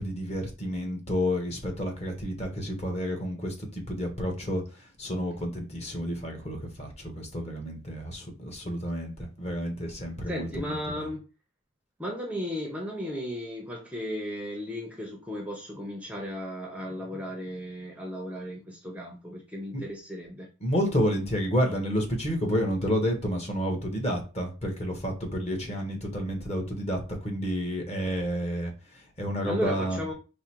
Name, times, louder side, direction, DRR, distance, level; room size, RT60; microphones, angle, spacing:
voice 1, 0.0-4.6 5.0-11.1 19.7-19.8 20.6-30.0, equal, 35° left, 1.1 m, -30 dB
voice 2, 10.3-11.2 12.0-20.5 29.4-30.1, equal, 5° right, 0.6 m, -35 dB
4.8 x 2.1 x 4.4 m
head